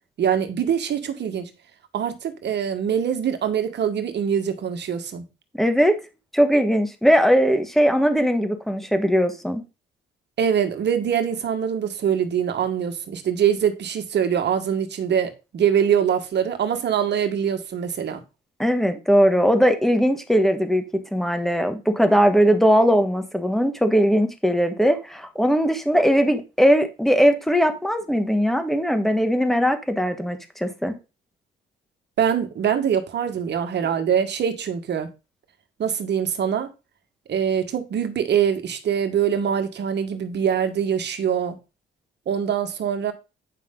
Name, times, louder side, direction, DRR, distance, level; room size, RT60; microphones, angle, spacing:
voice 1, 0.2-1.5 1.9-5.2 10.4-18.2 32.2-35.1 35.8-36.7 37.3-41.6 42.3-43.1, right 8 dB, 60° right, 1.6 m, -23 dB
voice 2, 5.6-6.0 6.3-9.6 18.6-20.8 21.1-31.0, equal, ahead, 1.4 m, -19 dB
9.0 x 5.4 x 3.8 m
cardioid pair, 90°, 20 cm